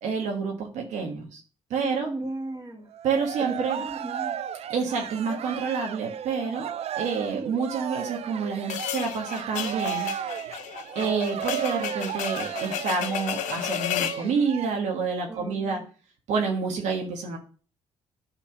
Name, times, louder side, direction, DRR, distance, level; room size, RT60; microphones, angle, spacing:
voice 1, 0.0-1.4 1.7-2.1 3.0-3.8 4.7-10.1 10.9-15.8 16.3-17.4, right 5 dB, 80° right, 2 dB, 1.4 m, -28 dB
voice 2, 1.8-2.9 3.8-4.4 11.0-11.1 15.3-15.9, right 2 dB, 30° right, 2 dB, 1.9 m, -36 dB
Cheering, 2.9-14.7, right 10 dB, 60° right, 0.5 m, -35 dB
sound 1, 8.7-14.2, left 11 dB, 80° left, 0.6 m, -32 dB
9.1 x 3.2 x 6.0 m, 0.39 s
supercardioid pair, 70°, 12 cm